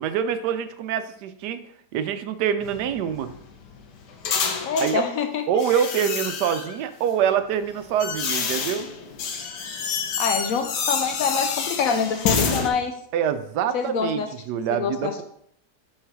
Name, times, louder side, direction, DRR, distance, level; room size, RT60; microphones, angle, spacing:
voice 1, 0.0-1.6 1.9-3.3 4.8-5.0 5.5-8.9 13.1-15.2, right 8 dB, 80° right, 11 dB, 1.2 m, -25 dB
sound 1, 2.6-5.0 5.6-6.8 7.5-12.7, left 5 dB, 85° left, 1.4 m, -28 dB
voice 2, 4.6-5.4 10.2-12.9 13.7-14.3 14.7-15.2, left 6 dB, 70° left, 7 dB, 0.9 m, -25 dB
6.3 x 3.9 x 4.7 m, 0.70 s
omnidirectional pair, 1.8 m